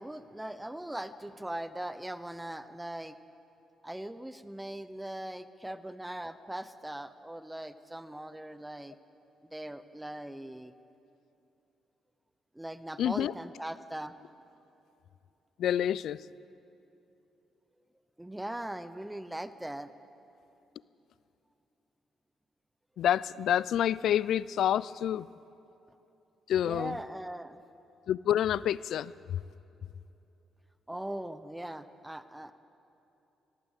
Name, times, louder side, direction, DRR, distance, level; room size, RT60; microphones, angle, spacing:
voice 1, 0.0-3.2 3.8-9.0 9.5-10.7 12.5-14.2 18.2-19.9 26.6-27.6 30.9-32.5, right 1 dB, 10° right, 12 dB, 0.8 m, -40 dB
voice 2, 13.0-13.3 15.6-16.3 23.0-25.3 26.5-27.0 28.1-29.4, left 10 dB, 75° left, 19 dB, 0.4 m, -28 dB
20.0 x 16.5 x 8.2 m, 2.9 s
cardioid pair, 90°, 0 cm